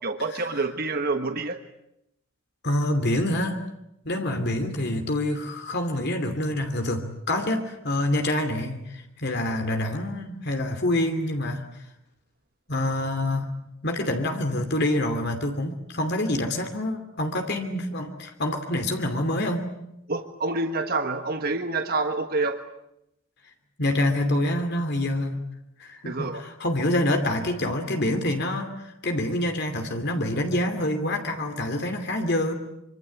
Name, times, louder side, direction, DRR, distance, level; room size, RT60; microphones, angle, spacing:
voice 1, 0.0-1.6 20.1-22.6 26.0-26.4, right 3 dB, 50° right, 6 dB, 1.5 m, -27 dB
voice 2, 2.6-3.6 4.0-11.6 12.7-13.5 13.8-19.6 23.8-25.4 25.8-32.5, left 1 dB, 55° left, 5 dB, 2.7 m, -26 dB
25.5 x 25.5 x 8.4 m, 0.82 s
head